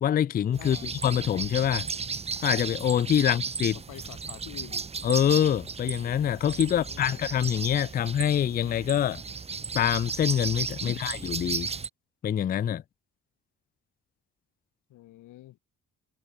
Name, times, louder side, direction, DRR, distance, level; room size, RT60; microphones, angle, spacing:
voice 1, 0.0-0.8 1.0-1.9 2.4-3.7 5.0-9.2 9.7-11.7 12.2-12.8, left 10 dB, 30° left, 0.3 m, -25 dB
sound 1, 0.5-11.9, right 5 dB, 20° right, 0.6 m, -35 dB
voice 2, 0.6-0.9 3.2-3.4 3.9-4.8 6.6-7.2 10.8-11.0 14.9-15.6, left 15 dB, 85° left, 1.7 m, -46 dB
cardioid pair, 90°, 30 cm